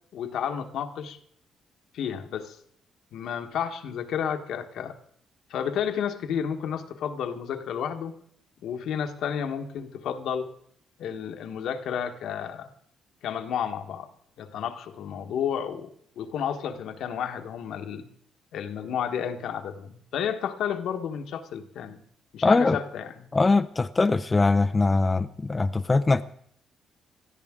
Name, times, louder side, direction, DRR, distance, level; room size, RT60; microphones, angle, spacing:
voice 1, 0.1-1.2 1.9-2.6 3.1-5.0 5.5-8.1 8.6-10.5 11.0-12.7 13.2-14.1 14.4-15.9 16.2-18.1 18.5-22.0 22.3-23.3, left 8 dB, 75° left, 6 dB, 1.2 m, -31 dB
voice 2, 22.4-22.8 23.3-26.2, left 3 dB, 25° left, 8 dB, 0.5 m, -22 dB
19.5 x 13.5 x 3.7 m, 0.66 s
cardioid pair, 90°, 0 cm